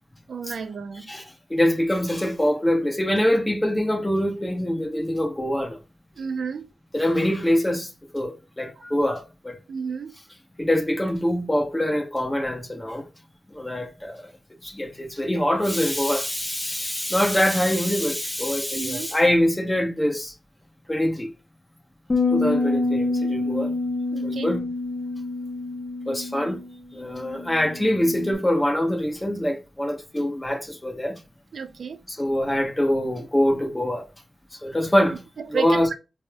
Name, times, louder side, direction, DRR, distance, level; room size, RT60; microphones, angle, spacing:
voice 1, 0.3-1.1 6.2-6.7 9.7-10.1 18.7-19.1 24.1-24.5 31.5-32.0 35.4-35.9, right 6 dB, 75° right, 0.4 m, -31 dB
voice 2, 1.5-5.8 6.9-9.6 10.6-13.1 13.5-14.3 14.6-20.3 20.9-21.3 22.3-23.7 24.2-24.7 26.1-26.6 26.9-31.2 32.1-34.1 34.6-35.2 35.5-35.9, left 1 dB, 15° left, 1.0 m, -24 dB
sound 1, 22.1-28.3, left 3 dB, 40° left, 0.7 m, -27 dB
4.1 x 3.4 x 2.3 m
cardioid pair, 50°, 0 cm